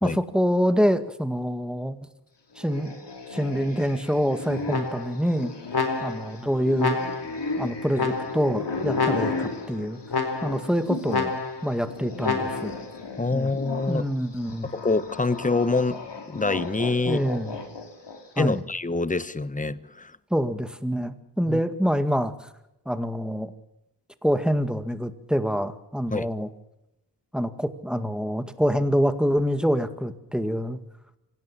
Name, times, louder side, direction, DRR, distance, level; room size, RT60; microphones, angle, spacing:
voice 1, 0.0-2.0 2.6-2.9 3.3-5.5 6.0-7.0 7.6-10.0 10.4-11.3 11.6-12.7 13.3-13.6 13.9-14.7 17.1-17.6 18.4-18.6 20.3-22.5 22.9-23.5 24.2-26.5 27.3-30.8, equal, ahead, 9 dB, 2.0 m, -26 dB
sound 1, 2.5-11.3 11.6-18.4, left 3 dB, 85° left, 4.1 m, -35 dB
sound 2, 4.7-5.3 5.7-6.4 6.8-7.4 8.0-8.6 8.9-9.6 10.1-10.7 11.1-11.7 12.2-12.8, left 4 dB, 65° left, 4.0 m, -28 dB
voice 2, 13.2-14.1 14.7-16.0 16.3-17.2 18.4-20.1 21.5-21.6 26.1-26.3, left 3 dB, 20° left, 15 dB, 1.1 m, -25 dB
25.5 x 18.0 x 7.4 m, 0.87 s
wide cardioid pair, 85°, 41 cm